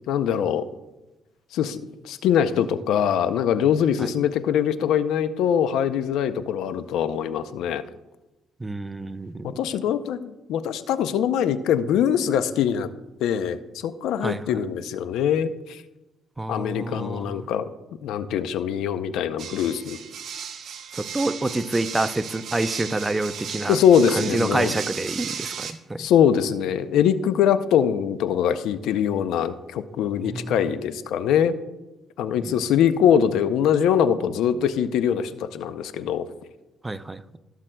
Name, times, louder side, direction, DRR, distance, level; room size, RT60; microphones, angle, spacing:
voice 1, 0.1-0.7 1.5-1.8 2.0-7.8 9.4-12.9 13.2-15.8 16.5-17.7 18.0-20.0 23.7-24.7 26.0-31.5 32.2-36.3, left 8 dB, 85° left, 12 dB, 0.5 m, -22 dB
voice 2, 8.6-9.6 14.2-14.6 16.4-17.4 21.0-23.8 24.2-26.0 30.2-30.6 32.4-32.6 36.8-37.2, right 2 dB, 15° right, 13 dB, 0.5 m, -27 dB
sound 1, 19.4-25.7, right 7 dB, 65° right, 0.9 m, -35 dB
16.0 x 7.5 x 2.2 m, 1.0 s
cardioid pair, 90°, 0 cm